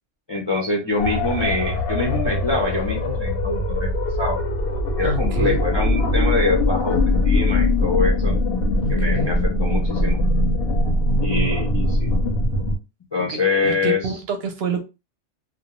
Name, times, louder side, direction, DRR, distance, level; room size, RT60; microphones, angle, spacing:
voice 1, 0.3-3.9 4.2-4.4 5.0-8.3 8.9-10.2 11.2-12.1 13.1-14.1, left 3 dB, 40° left, -2 dB, 0.3 m, -24 dB
sound 1, 1.0-12.8, left 1 dB, 65° left, 0.7 m, -21 dB
voice 2, 5.0-5.6 8.8-9.3 13.2-14.8, right 3 dB, 65° right, 5 dB, 0.7 m, -27 dB
2.2 x 2.1 x 2.9 m, 0.28 s
omnidirectional pair, 1.2 m